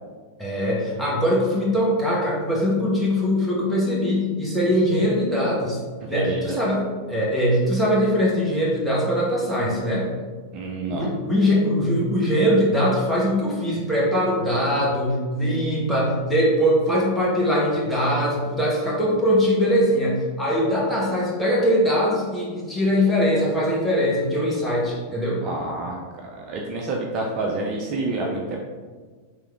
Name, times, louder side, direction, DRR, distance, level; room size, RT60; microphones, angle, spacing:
voice 1, 0.4-5.8 6.1-10.1 10.9-25.4 28.2-28.4, equal, ahead, -6 dB, 1.2 m, -22 dB
voice 2, 6.0-6.7 10.5-11.1 25.4-26.0 26.2-28.6, right 2 dB, 35° right, 0 dB, 0.5 m, -28 dB
3.4 x 3.3 x 3.4 m, 1.5 s
figure-of-eight pair, 90°, 0 cm